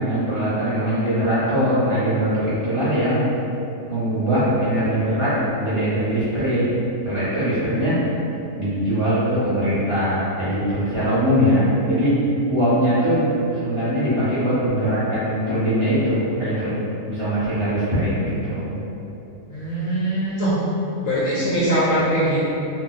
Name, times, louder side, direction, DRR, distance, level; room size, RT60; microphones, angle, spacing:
voice 1, 0.0-3.3 3.9-6.7 7.0-8.0 8.5-16.7 17.1-18.7, equal, 25° right, -14 dB, 0.9 m, -21 dB
voice 2, 19.5-20.5 21.0-22.4, right 1 dB, 65° left, -9 dB, 0.9 m, -21 dB
2.6 x 2.2 x 3.7 m, 2.8 s
omnidirectional pair, 1.7 m